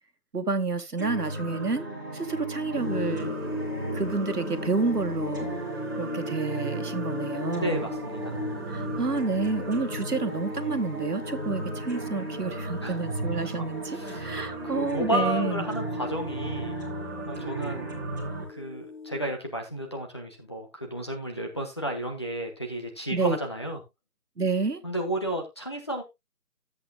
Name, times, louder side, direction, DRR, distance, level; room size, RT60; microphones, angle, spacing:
voice 1, 0.3-1.9 2.1-3.3 3.9-5.5 6.0-7.9 8.7-15.7 23.1-23.4 24.4-24.8, right 3 dB, 75° right, 2.0 m, -29 dB
sound 1, 1.0-18.4, right 3 dB, 10° right, 1.6 m, -35 dB
sound 2, 2.7-19.2, left 4 dB, 70° left, 3.0 m, -38 dB
voice 2, 7.6-8.4 12.8-13.0 13.4-13.7 13.9-14.3 14.7-16.8 17.3-17.9 18.5-23.8 24.8-26.0, right 1 dB, 15° left, 1.2 m, -32 dB
13.0 x 8.4 x 2.2 m
figure-of-eight pair, 170°, 47 cm